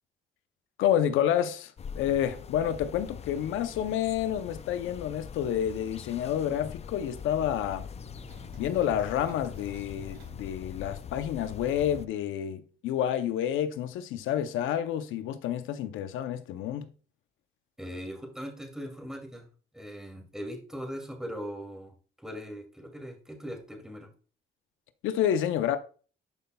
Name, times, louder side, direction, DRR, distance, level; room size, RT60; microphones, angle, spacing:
voice 1, 0.8-7.9 8.6-16.9 25.0-25.8, left 10 dB, 90° left, 0.7 m, -29 dB
sound 1, 1.8-12.1, left 7 dB, 35° left, 0.4 m, -43 dB
sound 2, 6.9-7.5 7.8-10.3, right 2 dB, 55° right, 3.3 m, -51 dB
voice 2, 17.8-19.5 19.7-24.1, equal, 5° right, 2.5 m, -40 dB
10.5 x 5.4 x 2.3 m
cardioid pair, 90°, 20 cm